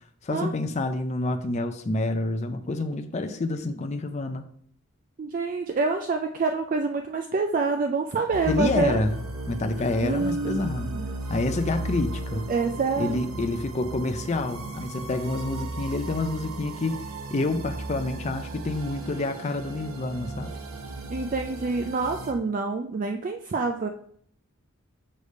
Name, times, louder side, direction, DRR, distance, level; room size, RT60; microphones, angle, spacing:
voice 1, 0.2-4.4 8.5-9.2 9.5-10.9 11.3-12.4 13.0-17.0 17.3-20.5, left 2 dB, 30° left, 7 dB, 0.4 m, -28 dB
voice 2, 5.2-9.0 10.0-11.1 12.5-13.2 21.1-23.9, right 4 dB, 40° right, 5 dB, 0.3 m, -27 dB
sound 1, 8.3-22.3, right 2 dB, 85° right, 0.9 m, -36 dB
6.4 x 3.4 x 5.3 m, 0.63 s
head